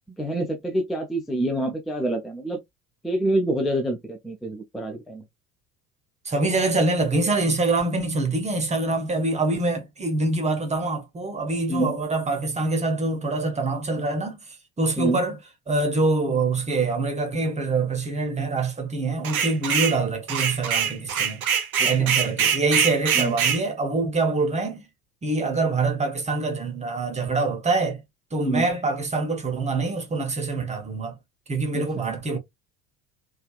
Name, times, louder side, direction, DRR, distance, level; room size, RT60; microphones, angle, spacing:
voice 1, 0.2-2.6 3.0-5.2 11.7-12.0 15.0-15.2 21.8-22.1 23.1-23.3 28.4-28.7 31.7-32.1, right 1 dB, ahead, 0.4 m, -27 dB
voice 2, 6.2-14.4 14.8-15.4 15.7-21.4 21.8-24.9 25.2-28.0 28.3-31.2 31.5-32.4, right 3 dB, 15° right, 0.9 m, -25 dB
sound 1, 19.2-20.0 20.3-23.6, right 7 dB, 85° right, 0.5 m, -23 dB
3.2 x 2.3 x 2.3 m
figure-of-eight pair, 60°, 42 cm